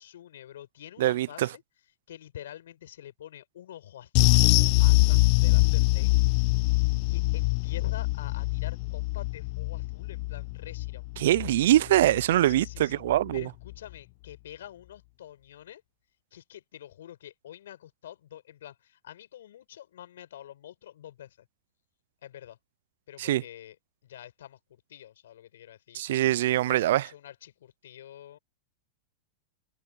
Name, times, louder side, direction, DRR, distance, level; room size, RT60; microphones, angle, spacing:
voice 1, 0.0-1.6 2.1-6.2 7.0-11.0 12.4-13.0 13.3-15.8 16.3-21.5 22.2-22.6 23.1-23.8 24.0-26.0 26.7-28.4, left 11 dB, 75° left, 7.1 m, -47 dB
voice 2, 1.0-1.5 11.2-13.5 23.2-23.4 25.9-27.1, right 14 dB, 70° right, 0.4 m, -23 dB
sound 1, 4.2-12.8 13.1-13.3 13.7-13.8, left 23 dB, 55° left, 1.3 m, -24 dB
hypercardioid pair, 110°, 0 cm